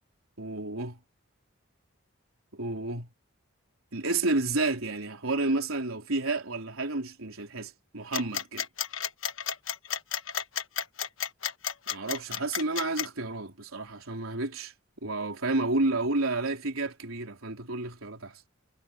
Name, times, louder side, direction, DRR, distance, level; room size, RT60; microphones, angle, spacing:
voice 1, 0.4-1.0 2.5-3.1 3.9-8.7 11.9-14.7 15.0-18.4, right 2 dB, 85° right, 3.9 m, -30 dB
sound 1, 8.1-13.1, left 8 dB, 70° left, 1.3 m, -32 dB
head